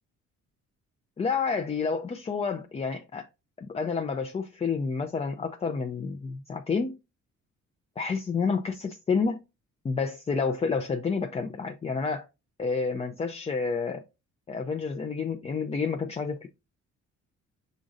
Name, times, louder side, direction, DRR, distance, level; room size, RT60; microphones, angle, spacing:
voice 1, 1.2-3.3 3.6-7.0 8.0-9.4 9.8-12.3 12.6-14.0 14.5-16.5, left 5 dB, 20° left, 0.3 m, -29 dB
5.0 x 3.9 x 2.5 m
cardioid pair, 90°, 30 cm